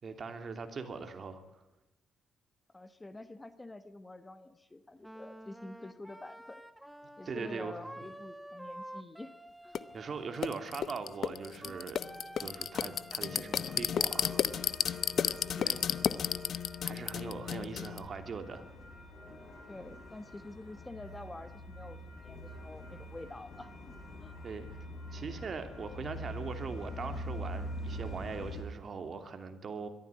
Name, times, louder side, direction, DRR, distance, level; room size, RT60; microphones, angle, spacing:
voice 1, 0.0-1.6 7.3-7.9 9.9-12.0 12.4-14.4 15.6-15.9 16.8-18.7 24.4-24.8 25.1-29.9, right 5 dB, 45° right, 7 dB, 2.8 m, -41 dB
voice 2, 2.7-6.6 7.2-9.3 9.6-9.8 15.5-16.3 17.5-17.9 19.7-24.3, left 2 dB, 15° left, 11 dB, 1.3 m, -48 dB
Wind instrument woodwind instrument, 5.0-17.5, right 1 dB, 5° right, 1.2 m, -51 dB
sound 1, 9.7-9.8 10.4-18.0, left 8 dB, 60° left, 0.9 m, -33 dB
sound 2, 14.0-28.6, equal, 35° left, 6.7 m, -45 dB
22.5 x 14.0 x 9.7 m, 0.97 s
cardioid pair, 115°, 0 cm